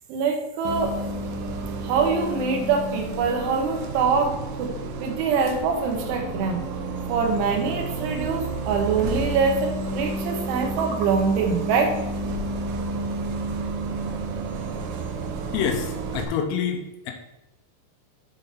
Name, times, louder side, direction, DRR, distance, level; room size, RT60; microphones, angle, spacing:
voice 1, 0.1-1.0 1.8-4.7 5.0-6.6 7.1-12.0, right 5 dB, 75° right, 2 dB, 3.4 m, -24 dB
Bus, 0.6-16.2, right 3 dB, 90° right, 2.2 m, -31 dB
voice 2, 15.5-17.1, left 7 dB, 90° left, 4 dB, 3.5 m, -27 dB
8.7 x 3.9 x 5.8 m, 0.91 s
omnidirectional pair, 5.8 m